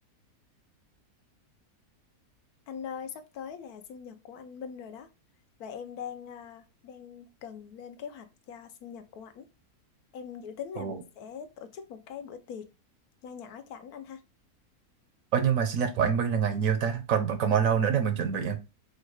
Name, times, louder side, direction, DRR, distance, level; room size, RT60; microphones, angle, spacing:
voice 1, 2.7-5.1 5.6-9.5 10.1-12.7 13.2-14.2, left 7 dB, 75° left, 1.1 m, -42 dB
voice 2, 15.3-18.6, right 7 dB, 70° right, 0.9 m, -26 dB
4.6 x 2.3 x 4.6 m
omnidirectional pair, 1.7 m